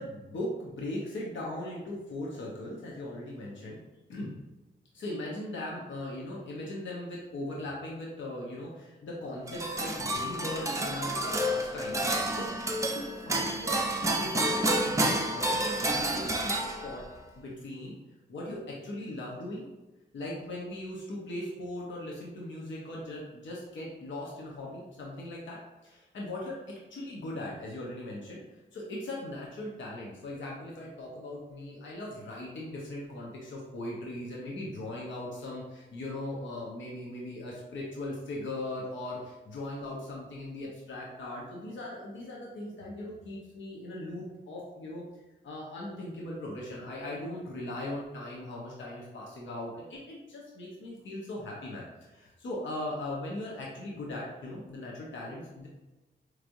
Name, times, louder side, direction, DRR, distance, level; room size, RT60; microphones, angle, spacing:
voice 1, 0.0-3.8 4.1-4.3 4.9-17.0 17.3-18.0 18.3-19.7 20.1-26.6 26.9-28.4 28.7-45.0 45.4-55.7, left 1 dB, 80° left, -4 dB, 0.9 m, -39 dB
sound 1, 9.5-17.2, right 1 dB, 15° right, 0.4 m, -30 dB
4.8 x 3.1 x 2.6 m, 1.1 s
wide cardioid pair, 105°, 19 cm